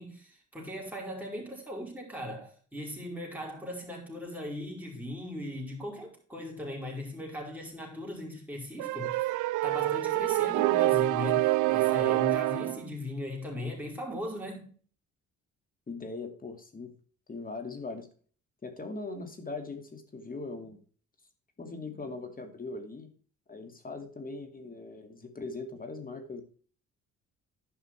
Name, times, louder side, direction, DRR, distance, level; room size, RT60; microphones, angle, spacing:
voice 1, 0.0-9.3 9.6-14.7, left 1 dB, 5° right, 4.9 m, -38 dB
sound 1, 8.8-12.8, right 18 dB, 85° right, 0.5 m, -26 dB
voice 2, 15.9-16.9 17.3-18.1 18.6-20.8 21.6-23.1 23.5-26.4, left 3 dB, 30° left, 2.5 m, -40 dB
11.5 x 5.6 x 4.5 m
cardioid pair, 90°, 30 cm